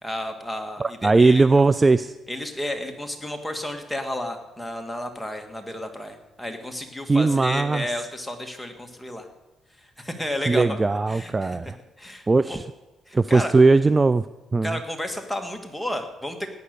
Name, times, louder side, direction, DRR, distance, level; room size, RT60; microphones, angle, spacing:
voice 1, 0.0-1.6 2.3-9.3 9.8-11.6 12.0-12.6 13.1-13.5 14.6-16.6, left 1 dB, 5° left, 4 dB, 2.0 m, -32 dB
voice 2, 0.8-2.1 7.1-7.9 10.5-11.8 12.3-12.6 13.1-14.2 14.5-14.8, right 3 dB, 25° right, 15 dB, 0.4 m, -19 dB
17.0 x 9.5 x 6.8 m, 1.1 s
cardioid pair, 90°, 0 cm